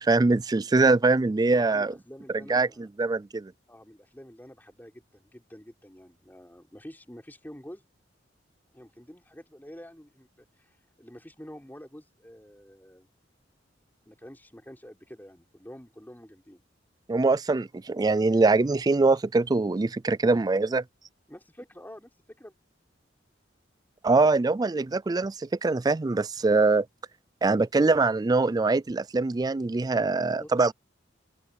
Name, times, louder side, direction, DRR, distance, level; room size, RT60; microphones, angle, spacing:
voice 1, 0.0-1.9 2.5-2.7 3.0-3.5 17.1-20.8 24.0-26.9 27.4-30.7, right 3 dB, 20° right, 0.3 m, -23 dB
voice 2, 1.5-2.9 3.7-7.8 8.7-13.1 14.1-16.6 20.2-20.3 21.3-22.5 30.2-30.5, equal, 10° left, 4.2 m, -48 dB
head